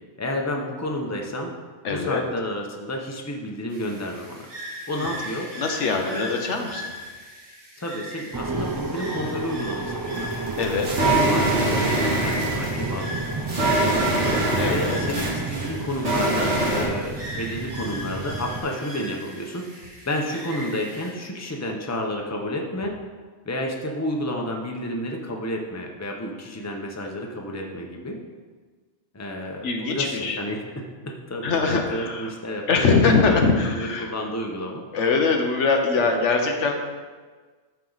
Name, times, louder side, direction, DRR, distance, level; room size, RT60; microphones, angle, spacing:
voice 1, 0.2-1.5 1.9-4.5 4.9-5.5 6.1-6.3 7.8-10.3 11.1-13.1 13.6-14.3 14.7-19.6 20.1-22.9 23.4-28.2 29.1-33.1 33.7-34.8, left 1 dB, 15° left, 1 dB, 0.8 m, -31 dB
voice 2, 1.8-2.2 5.6-6.8 10.6-10.9 14.6-15.0 29.6-30.4 31.4-32.3 32.7-34.1 34.9-36.7, left 4 dB, 85° left, 3 dB, 1.3 m, -22 dB
sound 1, 3.7-21.1, equal, 55° right, 2.2 m, -39 dB
sound 2, 8.3-18.6, right 3 dB, 35° right, 0.3 m, -31 dB
sound 3, 10.2-16.8, right 2 dB, 80° right, 2.0 m, -24 dB
13.0 x 4.6 x 4.0 m, 1.4 s
omnidirectional pair, 1.2 m